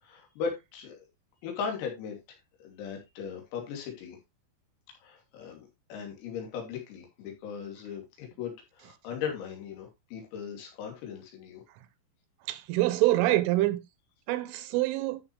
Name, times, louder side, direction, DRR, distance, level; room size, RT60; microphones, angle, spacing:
voice 1, 0.0-1.1 1.4-2.2 2.6-4.2 5.0-11.6, left 6 dB, 90° left, 5.6 m, -38 dB
voice 2, 12.5-13.8 14.3-15.2, right 17 dB, 80° right, 3.1 m, -25 dB
13.0 x 6.7 x 3.2 m
omnidirectional pair, 6.0 m